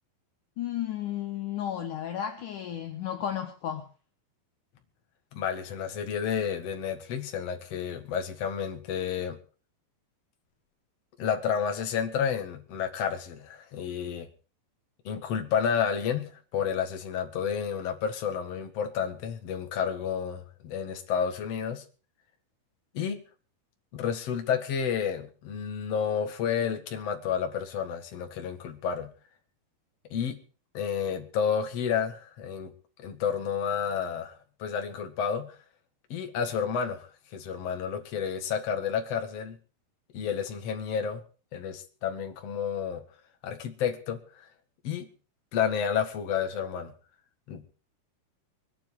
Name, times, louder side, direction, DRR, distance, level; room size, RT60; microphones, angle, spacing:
voice 1, 0.6-3.9, left 10 dB, 65° left, 5 dB, 2.6 m, -33 dB
voice 2, 5.3-9.4 11.2-14.3 15.0-21.8 22.9-23.2 23.9-29.1 30.1-30.4 30.7-32.7 33.0-35.6 36.1-39.6 40.1-41.2 41.5-43.0 43.4-44.4 44.8-45.1 45.5-46.9 47.5-47.6, left 7 dB, 45° left, 5 dB, 2.7 m, -30 dB
24.0 x 9.9 x 4.9 m, 0.37 s
omnidirectional pair, 4.4 m